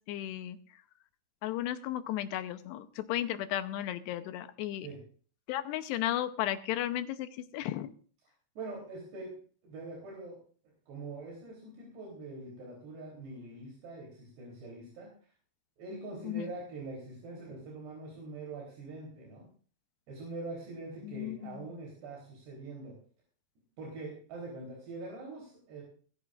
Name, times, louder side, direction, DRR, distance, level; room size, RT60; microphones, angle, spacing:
voice 1, 0.1-0.6 1.4-4.9 5.5-7.9 16.3-16.5 21.0-21.7, left 13 dB, 85° left, 10 dB, 2.9 m, -34 dB
voice 2, 8.6-9.3 9.6-10.4 10.9-15.1 15.8-19.5 20.1-22.9 23.8-25.8, right 3 dB, 75° right, -2 dB, 5.7 m, -43 dB
21.0 x 14.0 x 2.5 m, 0.44 s
omnidirectional pair, 4.8 m